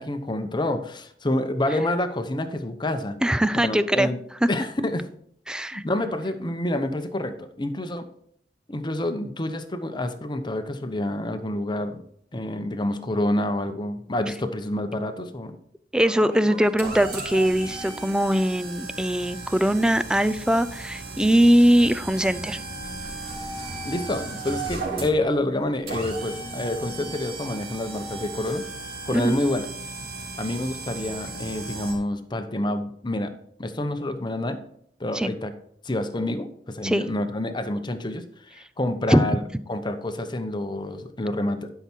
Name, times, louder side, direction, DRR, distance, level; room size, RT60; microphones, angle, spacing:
voice 1, 0.0-3.2 3.6-4.2 4.5-5.1 5.7-8.0 8.7-12.0 12.3-15.5 23.8-28.6 29.1-29.7 30.4-33.3 33.6-34.6 35.0-35.5 35.8-39.4 39.7-41.7, left 1 dB, 25° left, 8 dB, 0.9 m, -28 dB
voice 2, 3.2-4.1 4.4-4.5 5.5-5.8 15.9-22.6 29.1-29.4 35.1-35.3 36.8-37.0 39.1-39.2, equal, 5° right, 14 dB, 0.4 m, -21 dB
sound 1, 16.0-31.9, right 3 dB, 60° right, 3.4 m, -36 dB
12.0 x 5.8 x 4.5 m, 0.67 s
head